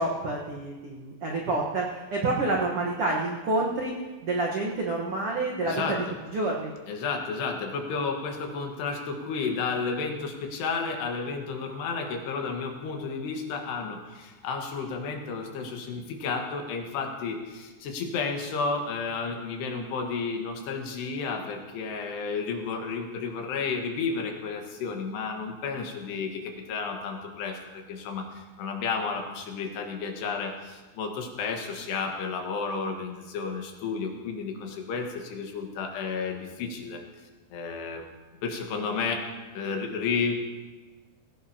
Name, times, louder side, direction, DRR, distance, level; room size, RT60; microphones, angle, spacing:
voice 1, 0.0-1.9 2.1-3.9 4.2-6.0 6.3-6.7, right 2 dB, 75° right, -2 dB, 1.3 m, -28 dB
voice 2, 5.6-6.0 6.9-37.0 37.5-38.0 38.4-39.3 39.5-40.3, left 5 dB, 90° left, 2 dB, 3.7 m, -32 dB
18.5 x 16.0 x 2.9 m, 1.2 s
omnidirectional pair, 4.7 m